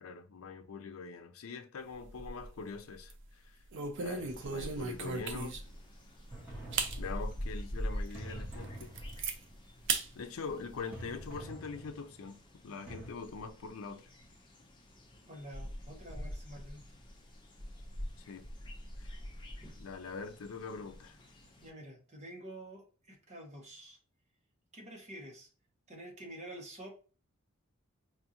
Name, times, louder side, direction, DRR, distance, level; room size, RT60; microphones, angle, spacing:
voice 1, 0.0-3.6 4.0-5.6 7.0-8.9 10.1-14.1 18.2-18.5 19.0-19.1 19.8-21.2, left 4 dB, 85° left, 0.5 m, -43 dB
sound 1, 1.9-2.6 3.0-3.2 3.7-5.8 6.3-6.4 6.7-7.0 7.5-7.6 8.1-8.2 8.5-9.4 9.9-10.1 10.5-11.4, right 4 dB, 65° right, 0.5 m, -36 dB
sound 2, 4.3-21.7, equal, 25° left, 0.6 m, -45 dB
sound 3, 6.3-7.5 8.1-9.5 10.9-12.3 12.9-13.1, right 1 dB, 10° right, 1.3 m, -48 dB
voice 2, 15.3-17.0 21.6-24.0 24.7-25.5 25.9-26.9, right 1 dB, 35° right, 1.1 m, -48 dB
4.4 x 2.5 x 2.8 m
head